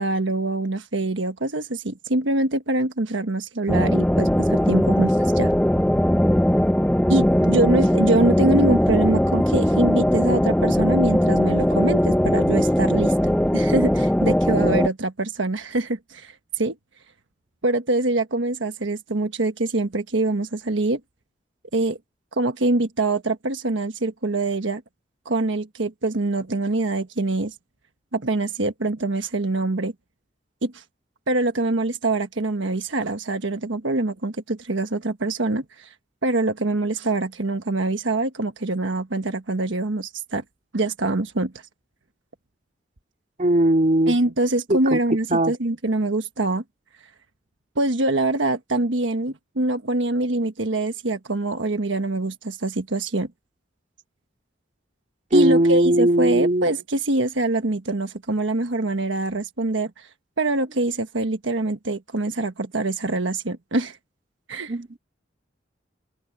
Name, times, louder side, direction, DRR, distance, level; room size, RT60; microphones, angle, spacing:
voice 1, 0.0-5.5 7.1-16.7 17.6-21.0 21.7-22.0 22.4-24.8 25.2-27.5 28.1-29.9 30.6-30.8 31.3-35.9 36.2-40.4 40.7-41.5 44.1-46.6 47.8-53.3 55.3-60.1 60.4-64.0 64.5-64.7, right 2 dB, 80° right, 1.3 m, -24 dB
sound 1, 3.7-14.9, equal, 5° left, 0.7 m, -19 dB
voice 2, 43.4-44.2 44.7-45.0 45.3-45.5 55.3-56.7 64.7-64.9, right 1 dB, 40° right, 2.5 m, -19 dB
open air
head